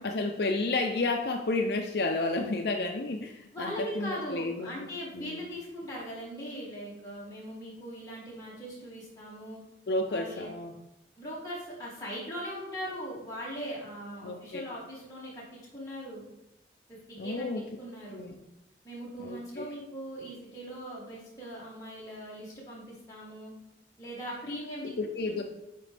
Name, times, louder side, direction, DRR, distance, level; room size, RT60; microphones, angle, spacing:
voice 1, 0.0-4.9 5.1-5.4 9.9-10.8 14.2-14.6 17.2-17.7 18.1-18.3 19.2-19.7 24.8-25.4, left 2 dB, 65° left, 4 dB, 0.6 m, -31 dB
voice 2, 3.5-9.6 10.1-10.5 11.2-15.4 15.7-16.2 16.9-18.3 18.8-23.5 24.0-24.9, equal, 20° left, -7 dB, 2.6 m, -40 dB
7.6 x 4.9 x 3.4 m, 0.92 s
head